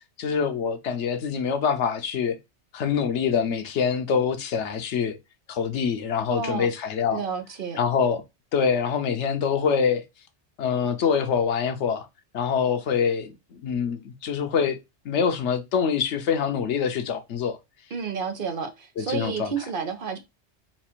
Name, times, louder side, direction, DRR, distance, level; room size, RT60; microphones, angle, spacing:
voice 1, 0.2-2.4 2.7-5.2 5.5-7.2 7.8-8.2 8.5-10.0 10.6-12.1 12.3-14.8 15.0-17.6 19.0-19.5, left 6 dB, 90° left, 1.1 m, -25 dB
voice 2, 6.3-6.7 7.1-7.8 17.9-20.2, right 6 dB, 55° right, 0.9 m, -31 dB
4.2 x 2.4 x 4.4 m
omnidirectional pair, 1.2 m